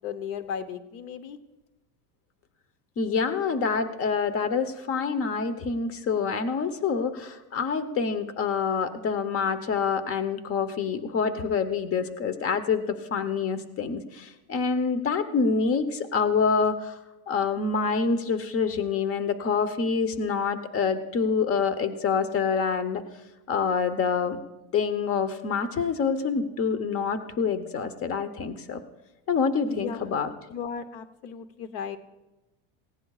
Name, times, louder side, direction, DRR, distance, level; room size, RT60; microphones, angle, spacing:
voice 1, 0.0-1.4 29.7-30.2 30.5-32.0, left 7 dB, 90° left, 11 dB, 1.1 m, -36 dB
voice 2, 3.0-17.0 17.3-23.0 23.5-24.4 24.7-28.8 29.3-30.3, left 5 dB, 35° left, 12 dB, 1.0 m, -26 dB
18.5 x 16.0 x 2.4 m, 1.0 s
cardioid pair, 135°, 41 cm